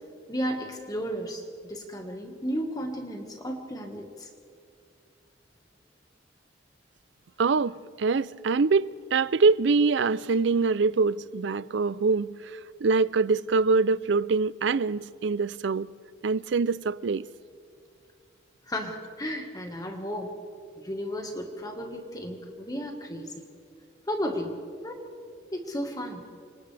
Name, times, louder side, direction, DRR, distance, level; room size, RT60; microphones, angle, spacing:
voice 1, 0.3-4.3 18.6-20.4 20.8-23.4 24.1-24.6 24.8-25.1 25.5-26.2, equal, 20° left, 1.6 m, -34 dB
voice 2, 7.4-15.9 16.2-17.3, right 4 dB, 65° right, 0.5 m, -24 dB
29.0 x 26.5 x 3.4 m
head